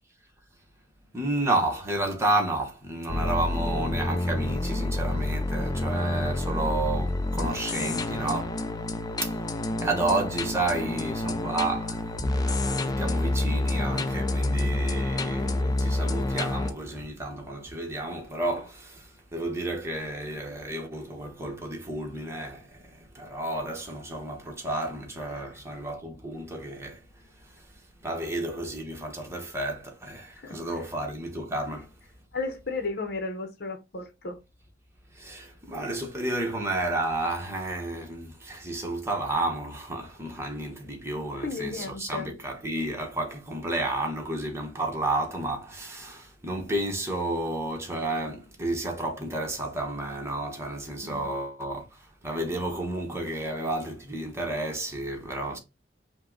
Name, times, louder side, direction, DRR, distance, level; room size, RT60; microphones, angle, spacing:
voice 1, 1.1-8.8 9.2-31.9 35.1-55.6, right 2 dB, 15° right, 1.0 m, -31 dB
sound 1, 3.1-16.7, left 2 dB, 20° left, 0.4 m, -28 dB
voice 2, 32.3-34.4 41.3-42.3 51.0-51.3, left 3 dB, 60° left, 0.9 m, -34 dB
5.4 x 2.2 x 3.8 m
head